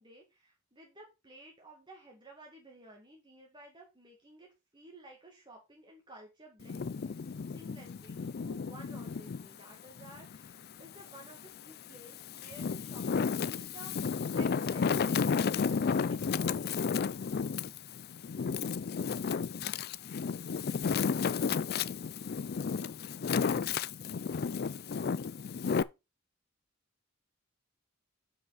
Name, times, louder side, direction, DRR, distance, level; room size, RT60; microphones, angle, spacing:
voice 1, 0.0-4.5 4.7-16.7, right 1 dB, 25° right, 0 dB, 2.2 m, -54 dB
Wind, 6.6-9.5 10.0-11.3 11.9-25.8, left 5 dB, 50° left, 0.4 m, -32 dB
8.1 x 6.2 x 4.9 m, 0.25 s
head